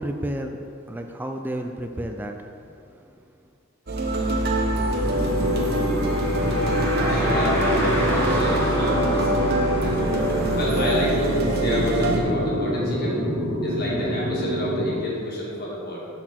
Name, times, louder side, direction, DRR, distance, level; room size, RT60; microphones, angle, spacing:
voice 1, 0.0-2.4, right 1 dB, 10° right, 4 dB, 0.3 m, -31 dB
Car, 3.9-12.5, right 1 dB, 10° left, 1.4 m, -31 dB
sound 1, 3.9-12.2, right 1 dB, 50° right, 0.8 m, -24 dB
sound 2, 5.0-14.9, equal, 65° right, 2.0 m, -27 dB
voice 2, 7.0-9.9 10.5-13.3 13.6-16.1, equal, 45° left, -5 dB, 2.0 m, -29 dB
12.0 x 4.3 x 4.3 m, 2.4 s
head